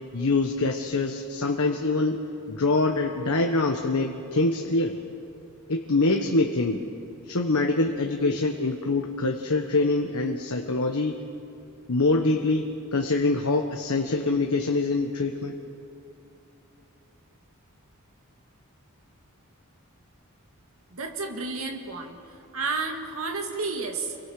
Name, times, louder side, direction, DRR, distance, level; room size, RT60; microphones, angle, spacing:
voice 1, 0.1-5.0 5.7-6.8 7.3-11.2 11.9-12.6 12.9-15.6, left 2 dB, 80° left, 2 dB, 1.2 m, -24 dB
voice 2, 20.9-24.2, right 3 dB, 70° right, 3 dB, 1.8 m, -31 dB
28.5 x 24.0 x 5.0 m, 2.9 s
head